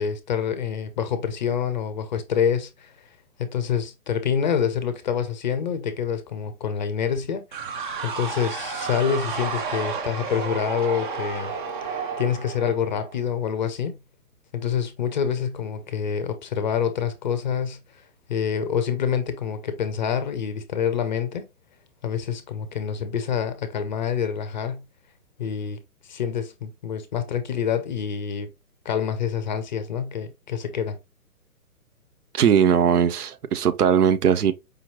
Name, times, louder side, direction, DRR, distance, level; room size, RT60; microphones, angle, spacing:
voice 1, 0.0-2.9 3.4-7.4 8.0-11.6 11.8-14.0 14.5-17.8 18.3-21.5 22.0-24.8 25.4-25.8 26.0-28.5 28.8-31.0, left 7 dB, 30° left, 0.5 m, -26 dB
sound 1, 7.5-13.3, right 5 dB, 35° right, 0.6 m, -31 dB
voice 2, 32.3-34.5, right 8 dB, 80° right, 0.7 m, -19 dB
5.0 x 3.0 x 2.8 m
hypercardioid pair, 135°, 45 cm